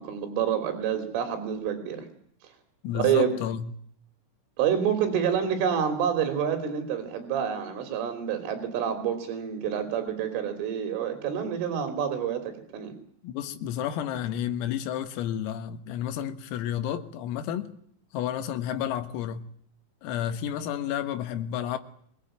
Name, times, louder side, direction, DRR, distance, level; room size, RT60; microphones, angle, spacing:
voice 1, 0.0-2.1 3.0-3.3 4.6-12.9, right 8 dB, 75° right, 5.5 m, -28 dB
voice 2, 2.8-3.7 13.2-17.8 18.1-19.5 20.0-21.8, left 10 dB, 90° left, 4.3 m, -31 dB
24.5 x 20.5 x 8.9 m
omnidirectional pair, 5.9 m